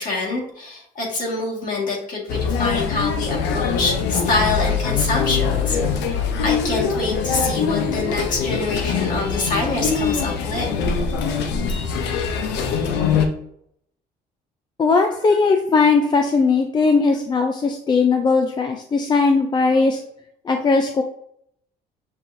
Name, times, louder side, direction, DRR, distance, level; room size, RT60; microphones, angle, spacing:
voice 1, 0.0-6.1 6.4-10.8, left 3 dB, 50° left, -3 dB, 1.8 m, -25 dB
sound 1, 2.3-13.3, left 6 dB, 90° left, 0.6 m, -23 dB
voice 2, 14.8-20.0 20.5-21.0, left 4 dB, 25° left, 4 dB, 0.4 m, -18 dB
6.3 x 2.8 x 2.6 m, 0.70 s
cardioid pair, 110°, 17 cm